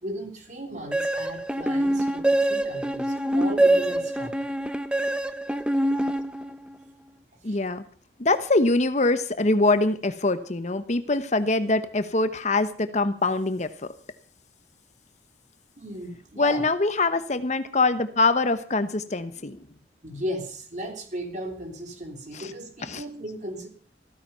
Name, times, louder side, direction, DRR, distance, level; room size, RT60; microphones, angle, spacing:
voice 1, 0.0-4.5 7.4-7.6 15.8-16.6 20.0-23.7, equal, 45° right, 4 dB, 3.4 m, -36 dB
sound 1, 0.9-6.7, right 1 dB, 5° right, 0.8 m, -24 dB
voice 2, 7.4-7.8 8.2-13.9 16.4-19.7 22.3-22.5 22.8-23.0, left 2 dB, 40° left, 11 dB, 1.0 m, -24 dB
15.5 x 14.0 x 5.6 m, 0.43 s
head